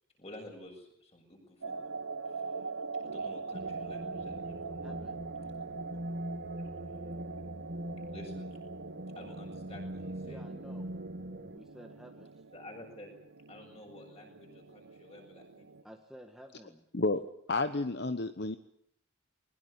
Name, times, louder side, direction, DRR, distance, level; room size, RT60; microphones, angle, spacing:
voice 1, 0.2-1.9 2.2-2.4 3.0-4.8 6.6-6.7 8.1-8.6 9.2-10.4 12.5-13.1 13.5-15.7, left 1 dB, 30° left, 2 dB, 7.4 m, -51 dB
sound 1, 1.6-15.8, right 4 dB, 85° right, 1.0 m, -43 dB
sound 2, 3.5-11.6, right 1 dB, 45° right, 1.6 m, -42 dB
voice 2, 4.8-5.2 10.2-10.9 11.5-12.5 15.8-16.8, equal, ahead, 3 dB, 1.6 m, -52 dB
voice 3, 17.5-18.6, left 3 dB, 50° left, 10 dB, 1.0 m, -30 dB
21.5 x 20.5 x 8.6 m, 0.69 s
head